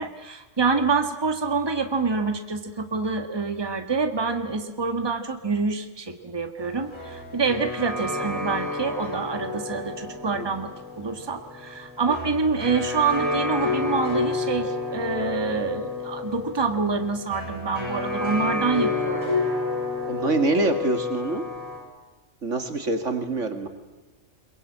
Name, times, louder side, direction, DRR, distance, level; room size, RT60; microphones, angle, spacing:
voice 1, 0.0-10.7 11.0-19.3, right 4 dB, 20° right, 6 dB, 1.6 m, -26 dB
sound 1, 6.6-21.8, left 3 dB, 20° left, 7.1 m, -30 dB
voice 2, 20.1-21.5 22.4-23.7, right 2 dB, 80° right, 7 dB, 2.5 m, -25 dB
22.5 x 22.5 x 8.7 m, 1.2 s
omnidirectional pair, 1.3 m